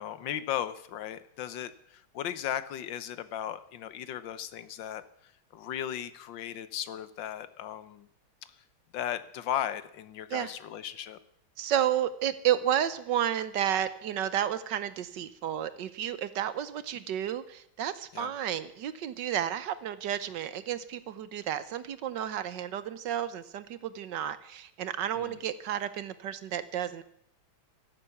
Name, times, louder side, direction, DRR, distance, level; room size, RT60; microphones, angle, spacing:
voice 1, 0.0-5.0 5.5-8.1 8.9-11.2 18.1-18.3 25.2-25.4, left 10 dB, 75° left, 13 dB, 1.6 m, -36 dB
voice 2, 11.6-27.0, right 10 dB, 70° right, 14 dB, 1.4 m, -31 dB
14.5 x 12.5 x 7.1 m, 0.72 s
omnidirectional pair, 2.1 m